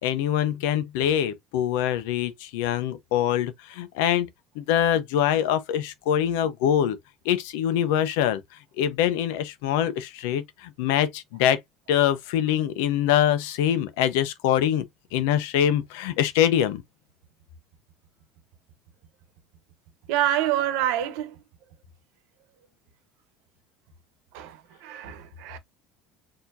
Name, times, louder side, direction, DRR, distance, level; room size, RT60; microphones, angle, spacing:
voice 1, 0.0-4.3 4.6-7.0 7.2-8.4 8.8-11.6 11.9-14.8 15.1-16.8, left 10 dB, 85° left, 0.8 m, -24 dB
voice 2, 20.1-21.3 24.3-25.6, right 11 dB, 75° right, 1.0 m, -27 dB
4.6 x 2.9 x 2.7 m
supercardioid pair, 120°, 0 cm